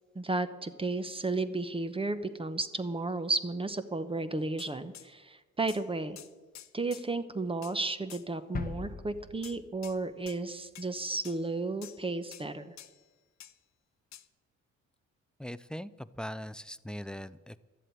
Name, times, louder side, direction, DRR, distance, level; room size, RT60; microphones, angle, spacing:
voice 1, 0.1-6.2 6.7-12.7, right 3 dB, 20° right, 11 dB, 1.0 m, -33 dB
sound 1, 4.6-5.1 5.7-5.9 6.2-7.1 7.6-7.8 8.1-8.3 9.4-10.0 10.3-10.4 10.8-10.9 11.2-11.5 11.8-12.1 12.3-12.5 12.8-13.0 13.4-13.6 14.1-14.3, left 11 dB, 65° left, 0.8 m, -49 dB
sound 2, 8.5-10.4 10.7-10.8, left 5 dB, 30° left, 0.9 m, -40 dB
voice 2, 15.4-17.6, equal, 5° left, 16 dB, 0.4 m, -40 dB
13.0 x 7.6 x 9.3 m, 1.3 s
cardioid pair, 90°, 30 cm